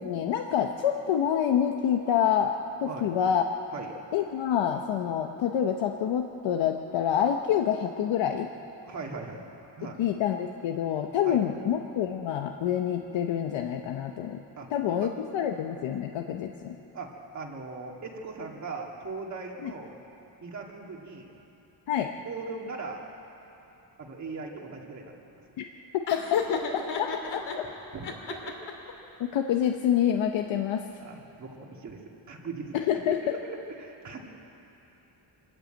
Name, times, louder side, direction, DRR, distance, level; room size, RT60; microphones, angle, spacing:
voice 1, 0.0-3.4 4.1-8.5 10.0-14.4 14.7-16.8 19.6-19.7 21.9-22.1 25.6-25.7 26.1-26.4 26.7-27.6 29.2-30.8 32.7-33.2, left 9 dB, 80° left, 4 dB, 1.0 m, -27 dB
voice 2, 8.8-9.4 9.8-10.1 11.2-11.4 14.6-15.2 16.9-20.0 20.4-21.3 22.2-23.0 24.0-25.1 27.9-28.6 31.0-34.2, right 4 dB, 40° right, 0 dB, 2.3 m, -39 dB
Laughter, 26.1-27.6 28.0-28.9, left 6 dB, 65° left, 2.4 m, -31 dB
24.5 x 13.5 x 9.1 m, 3.0 s
cardioid pair, 170°, 45 cm